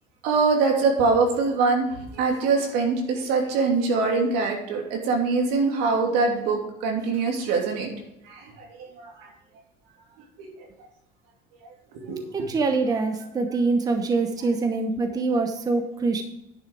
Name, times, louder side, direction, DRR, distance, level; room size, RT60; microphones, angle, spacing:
voice 1, 0.2-1.9 2.1-7.9 8.3-9.1 10.4-10.5 11.9-12.2, right 4 dB, 80° right, 1 dB, 2.9 m, -23 dB
voice 2, 12.3-16.2, right 3 dB, 20° right, 6 dB, 0.9 m, -24 dB
10.5 x 6.4 x 4.8 m, 0.88 s
cardioid pair, 145°, 17 cm